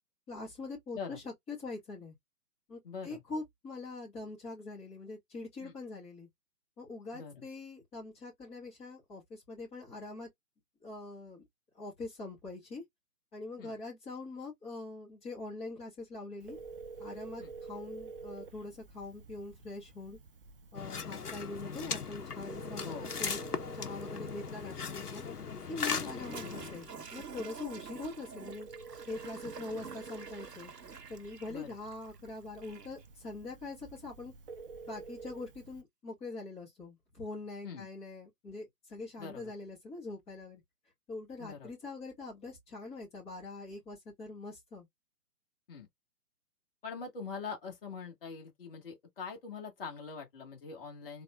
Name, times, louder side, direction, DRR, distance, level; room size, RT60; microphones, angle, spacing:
voice 1, 0.3-2.1 2.7-6.3 6.8-10.3 10.8-11.4 11.7-12.8 13.3-16.6 17.0-20.2 20.7-23.4 23.7-25.2 25.7-28.7 29.1-30.7 31.1-34.3 34.9-40.6 41.1-44.9, left 3 dB, 15° left, 2.3 m, -43 dB
voice 2, 2.8-3.2 5.6-5.7 7.1-7.4 13.6-13.7 17.4-17.5 22.8-23.1 25.9-26.1 29.8-29.9 31.5-31.7 37.6-37.9 39.2-39.5 41.4-41.7 45.7-45.9 46.8-51.2, left 5 dB, 35° left, 1.7 m, -43 dB
Telephone, 16.4-35.8, right 4 dB, 35° right, 0.7 m, -50 dB
sound 1, 20.7-26.9, left 5 dB, 70° left, 1.0 m, -38 dB
Toilet flush, 25.9-33.1, right 6 dB, 90° right, 0.8 m, -48 dB
4.1 x 3.2 x 2.4 m
figure-of-eight pair, 140°, 47 cm